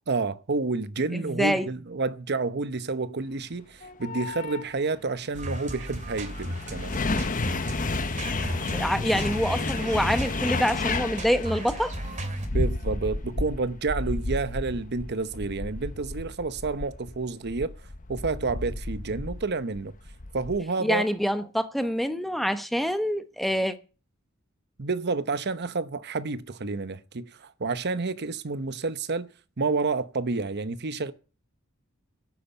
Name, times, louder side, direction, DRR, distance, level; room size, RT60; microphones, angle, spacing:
voice 1, 0.1-6.9 12.5-17.7 18.1-19.9 20.3-21.0 24.8-29.3 29.6-31.1, right 3 dB, 50° right, 0.9 m, -29 dB
voice 2, 1.1-1.7 8.7-11.9 20.8-23.7, equal, ahead, 0.9 m, -26 dB
sound 1, 3.8-4.6 5.6-20.6, left 3 dB, 40° left, 1.0 m, -32 dB
sound 2, 5.3-12.5, equal, 35° right, 2.4 m, -35 dB
11.0 x 8.5 x 8.0 m
head